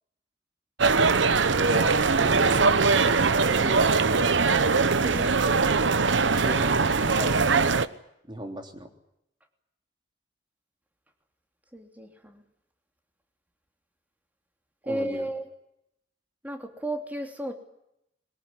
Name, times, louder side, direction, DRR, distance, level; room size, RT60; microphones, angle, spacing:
sound 1, 0.8-7.9, right 4 dB, 80° right, 1.0 m, -21 dB
voice 1, 1.6-4.0 6.3-6.8 7.1-7.8 8.3-8.9 14.8-15.3, equal, 25° right, 4 dB, 3.4 m, -37 dB
voice 2, 5.0-5.5 11.7-12.4 14.9-15.5 16.4-17.5, right 1 dB, 10° right, 4 dB, 3.0 m, -33 dB
22.5 x 20.5 x 9.9 m, 0.79 s
head